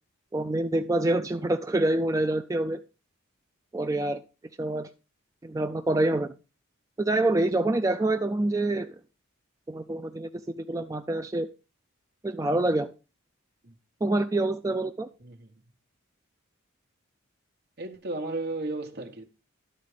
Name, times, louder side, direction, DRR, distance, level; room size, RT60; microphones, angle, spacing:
voice 1, 0.3-2.8 3.7-4.2 4.6-4.9 5.4-6.3 7.0-9.0 9.7-10.3 10.6-11.5 12.2-12.9 14.0-15.1, right 2 dB, 15° right, 0.3 m, -26 dB
voice 2, 15.2-15.5 17.8-19.2, right 2 dB, 50° right, 1.3 m, -34 dB
11.0 x 4.2 x 5.0 m
head